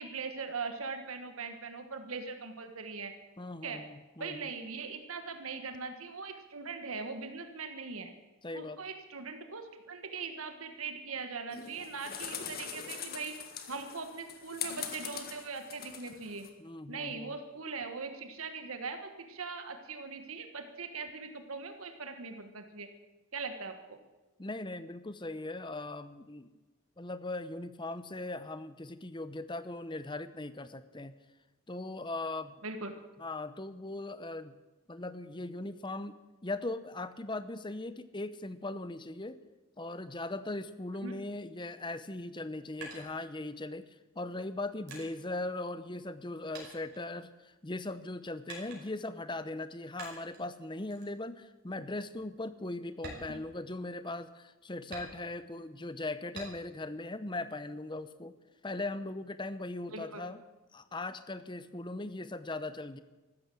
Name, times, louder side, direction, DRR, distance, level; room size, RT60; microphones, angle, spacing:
voice 1, 0.0-3.1 3.6-3.8 4.2-8.1 8.5-13.3 13.7-16.5 16.9-22.9 23.3-24.0 32.6-32.9 41.0-41.1 53.3-53.4 59.9-60.2, right 4 dB, 75° right, 7 dB, 1.5 m, -41 dB
voice 2, 3.4-4.4 8.4-8.8 16.6-17.3 24.4-26.5 27.0-31.1 31.7-32.5 33.2-34.5 34.9-39.4 39.8-58.3 58.6-60.4 60.7-63.0, left 2 dB, 20° left, 13 dB, 0.8 m, -39 dB
sound 1, 11.5-16.5, left 7 dB, 45° left, 1.7 m, -42 dB
sound 2, 42.3-43.8 44.4-46.3 46.5-47.7 48.5-49.1 50.0-50.5 50.9-51.2 51.6-51.7 52.1-52.3 52.9-54.1 54.9-55.6 56.3-56.9 57.3-58.1, right 2 dB, 50° right, 5.2 m, -48 dB
14.5 x 12.5 x 7.7 m, 1.1 s
head